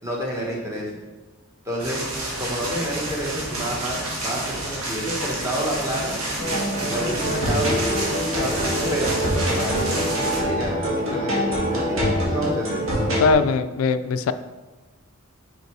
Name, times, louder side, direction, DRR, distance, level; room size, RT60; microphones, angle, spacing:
voice 1, 0.0-1.0 1.6-2.1 2.4-6.2 6.9-8.6 8.9-12.8, equal, 15° right, -3 dB, 1.3 m, -29 dB
sound 1, 1.8-10.4, right 1 dB, 85° right, 1.6 m, -29 dB
sound 2, 6.4-13.3, equal, 70° right, 2.0 m, -24 dB
voice 2, 13.2-14.3, left 4 dB, 80° left, 11 dB, 0.3 m, -20 dB
5.4 x 4.5 x 4.7 m, 1.2 s
head